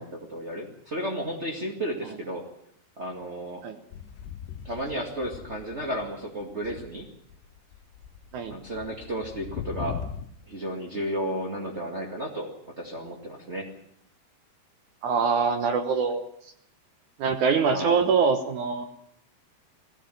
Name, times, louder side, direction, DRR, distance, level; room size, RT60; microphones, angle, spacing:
voice 1, 0.0-2.4 3.0-3.6 4.6-7.1 8.5-10.0 10.5-13.7 17.7-18.0, right 1 dB, 35° right, 1 dB, 1.0 m, -33 dB
sound 1, 3.9-6.2 6.5-10.3, left 9 dB, 80° left, 3.2 m, -40 dB
voice 2, 15.0-16.3 17.2-18.8, right 5 dB, 70° right, 8 dB, 1.9 m, -24 dB
20.0 x 16.0 x 9.2 m, 0.70 s
omnidirectional pair, 5.0 m